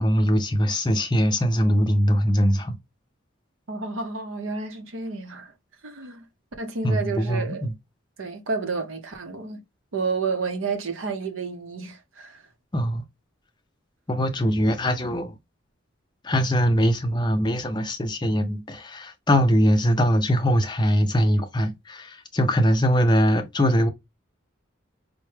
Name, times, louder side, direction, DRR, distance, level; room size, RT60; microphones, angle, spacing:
voice 1, 0.0-2.8 6.8-7.7 12.7-13.0 14.1-15.4 16.2-23.9, equal, 20° left, 0.5 m, -22 dB
voice 2, 3.7-5.5 5.8-6.2 6.6-7.7 8.2-9.6 9.9-12.4, right 4 dB, 80° right, 0.7 m, -30 dB
4.5 x 2.1 x 3.2 m
head